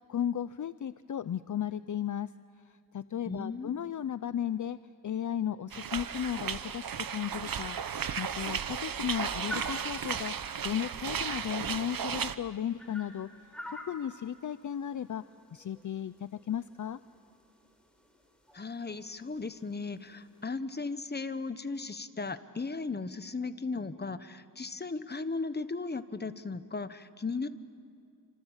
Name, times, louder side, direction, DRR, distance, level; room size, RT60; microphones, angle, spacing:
voice 1, 0.0-2.3 2.9-4.8 5.0-10.3 10.6-13.3 13.7-15.2 15.5-17.0, left 9 dB, 55° left, 14 dB, 0.6 m, -35 dB
voice 2, 3.3-3.8 18.5-27.5, left 4 dB, 25° left, 11 dB, 1.1 m, -36 dB
sound 1, 5.7-12.4, right 7 dB, 65° right, 1.0 m, -35 dB
sound 2, 9.2-20.5, equal, 5° left, 4.7 m, -50 dB
28.0 x 27.0 x 7.3 m, 2.4 s
wide cardioid pair, 100°, 37 cm